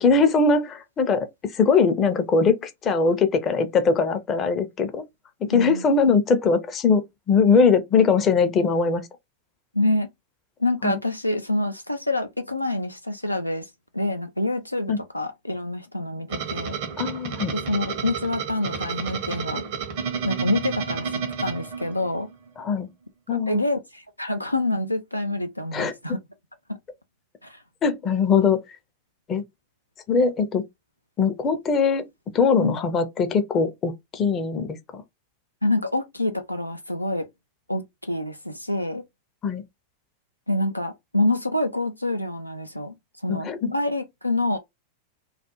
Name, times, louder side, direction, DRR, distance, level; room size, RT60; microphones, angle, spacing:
voice 1, 0.0-5.0 5.4-9.1 10.8-11.0 14.9-15.0 17.0-17.5 22.6-22.9 23.3-23.6 25.7-25.9 27.8-28.6 29.3-29.4 30.1-30.6 31.2-32.0 32.3-35.0 39.4-39.6 43.3-43.7, left 5 dB, 25° left, 0.5 m, -21 dB
voice 2, 5.5-5.8 9.7-10.1 10.6-16.8 17.5-19.6 20.2-22.3 23.5-26.2 26.7-26.8 27.4-27.6 32.6-32.8 35.6-37.3 37.7-39.0 40.5-42.9 43.2-44.6, left 2 dB, 85° left, 0.3 m, -27 dB
sound 1, 16.3-22.3, right 6 dB, 50° right, 0.6 m, -31 dB
2.4 x 2.1 x 2.9 m
figure-of-eight pair, 90°, 0 cm